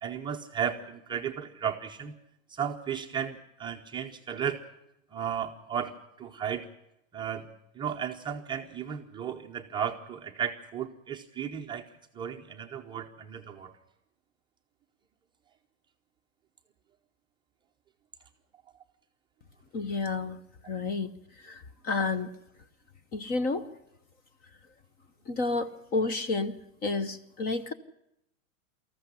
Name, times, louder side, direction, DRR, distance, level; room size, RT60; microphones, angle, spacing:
voice 1, 0.0-2.1 2.5-4.6 5.1-5.9 6.2-6.7 7.1-7.5 7.8-11.9 12.1-13.8, right 8 dB, 10° right, 1 dB, 0.7 m, -34 dB
voice 2, 19.7-20.4 20.7-21.1 21.4-22.3 23.1-23.7 25.3-27.7, left 3 dB, 25° left, 14 dB, 0.8 m, -30 dB
19.0 x 14.5 x 9.9 m, 0.82 s
supercardioid pair, 150°, 40 cm